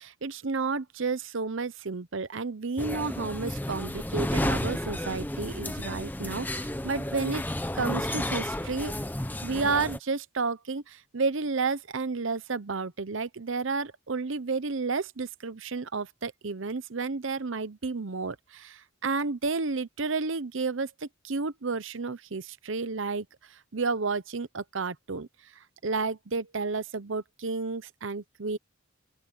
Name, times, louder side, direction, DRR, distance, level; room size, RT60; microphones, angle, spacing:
voice 1, 0.0-7.4 7.7-8.9 9.4-23.3 23.7-25.3 25.8-28.6, right 4 dB, 65° right, 0.8 m, -31 dB
sound 1, 2.8-10.0, left 1 dB, 10° left, 1.0 m, -32 dB
open air
head